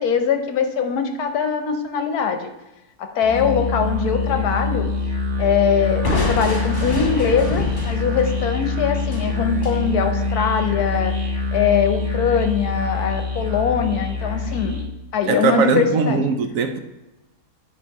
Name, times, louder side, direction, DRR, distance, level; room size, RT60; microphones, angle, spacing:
voice 1, 0.0-2.5 3.0-4.9 5.4-11.1 11.5-14.8 15.1-16.2, left 6 dB, 75° left, 6 dB, 1.3 m, -22 dB
Musical instrument, 3.2-14.9, left 4 dB, 40° right, 1.5 m, -24 dB
Crushing, 6.0-9.8, left 2 dB, 50° left, 2.5 m, -28 dB
voice 2, 15.3-16.8, right 5 dB, 65° right, 7 dB, 1.0 m, -20 dB
10.5 x 4.0 x 4.6 m, 1.0 s
omnidirectional pair, 1.6 m